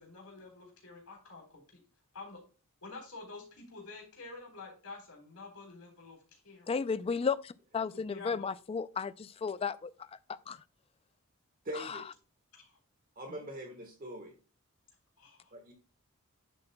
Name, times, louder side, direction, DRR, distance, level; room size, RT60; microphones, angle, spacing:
voice 1, 0.0-1.8 2.1-2.4 2.8-6.8 7.9-8.5 12.5-12.8 13.3-13.4 15.2-15.5, left 3 dB, 90° left, 3.8 m, -49 dB
voice 2, 6.7-9.9 10.5-10.6, left 5 dB, 25° left, 0.3 m, -33 dB
voice 3, 11.6-12.1 13.1-14.3 15.5-15.7, right 1 dB, 40° right, 1.3 m, -42 dB
10.0 x 7.6 x 2.2 m
head